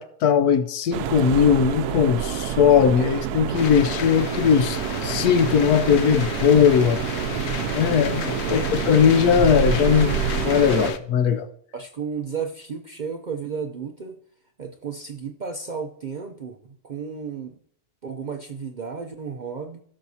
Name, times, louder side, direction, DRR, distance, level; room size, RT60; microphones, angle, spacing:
voice 1, 0.0-7.0 7.7-10.2 10.4-11.5, left 7 dB, 80° left, 11 dB, 1.2 m, -19 dB
sound 1, 0.9-10.9, right 9 dB, 85° right, 1.1 m, -28 dB
sound 2, 3.5-11.0, left 8 dB, 60° left, 0.7 m, -33 dB
voice 2, 11.7-14.2 14.6-17.5 18.0-19.8, right 6 dB, 70° right, 4 dB, 0.4 m, -33 dB
16.5 x 6.3 x 2.8 m, 0.63 s
omnidirectional pair, 1.6 m